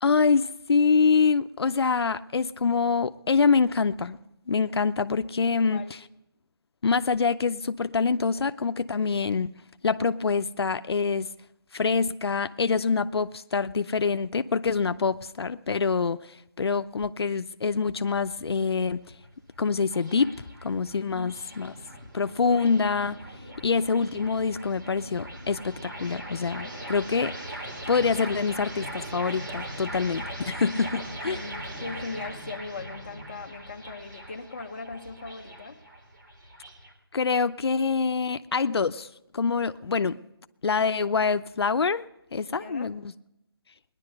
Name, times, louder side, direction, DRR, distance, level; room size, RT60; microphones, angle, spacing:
voice 1, 0.0-4.2 4.5-6.0 6.8-9.5 9.8-11.3 11.7-16.2 16.6-19.0 19.6-20.3 20.6-21.7 22.1-23.2 23.6-27.4 27.9-31.4 37.1-39.1 39.3-40.2 40.6-42.1 42.3-43.1, left 5 dB, 80° left, 0.6 m, -25 dB
voice 2, 5.4-5.9 21.0-21.3 31.2-35.8 42.5-42.9, left 4 dB, 30° left, 0.9 m, -39 dB
sound 1, 17.9-36.9, right 1 dB, 50° right, 3.6 m, -40 dB
19.5 x 10.5 x 6.6 m
hypercardioid pair, 180°, 13 cm